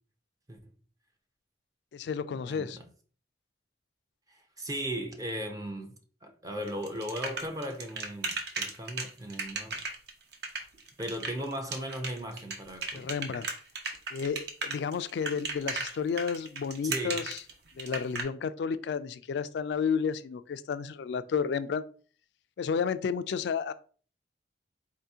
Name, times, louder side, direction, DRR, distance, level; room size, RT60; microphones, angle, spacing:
voice 1, 1.9-2.8 12.9-13.5 14.1-17.4 17.8-21.8 22.6-23.7, left 6 dB, 65° left, 0.3 m, -31 dB
voice 2, 2.4-2.8 4.3-6.0 6.2-9.8 11.0-13.1 16.8-17.3, equal, 20° right, 0.5 m, -37 dB
sound 1, 6.7-18.2, right 4 dB, 60° right, 0.7 m, -35 dB
4.2 x 2.8 x 3.5 m
head